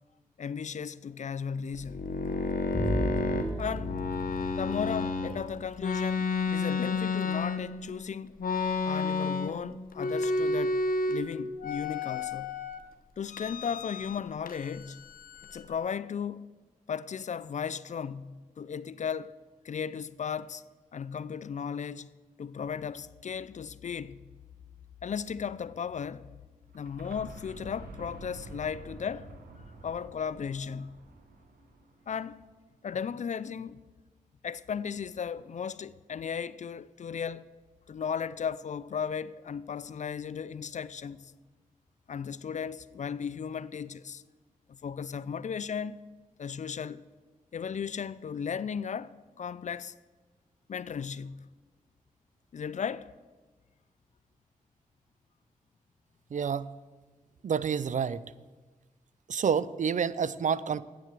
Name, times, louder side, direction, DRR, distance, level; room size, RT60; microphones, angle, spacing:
voice 1, 0.4-2.1 3.6-4.0 4.6-8.4 8.8-10.8 11.1-12.5 13.2-15.0 15.5-16.5 16.9-19.4 19.6-20.6 20.9-22.1 22.4-24.2 25.0-26.3 26.7-29.3 29.8-31.0 32.1-32.5 32.8-33.8 34.4-37.5 37.9-41.3 42.1-44.2 44.7-46.0 46.4-47.1 47.5-49.9 50.7-51.4 52.5-53.1, left 7 dB, 55° left, 0.4 m, -36 dB
sound 1, 1.7-5.3 5.8-7.9 8.4-9.7 9.9-11.2 11.6-12.8 13.3-14.2 14.5-15.7, left 3 dB, 70° left, 0.9 m, -31 dB
Bowed string instrument, 2.7-5.8, equal, 35° left, 1.4 m, -35 dB
sound 2, 26.7-32.5, right 3 dB, 80° right, 1.2 m, -49 dB
voice 2, 56.3-56.7 57.4-58.2 59.3-60.8, right 7 dB, 55° right, 0.4 m, -28 dB
8.1 x 7.5 x 7.5 m
cardioid pair, 50°, 15 cm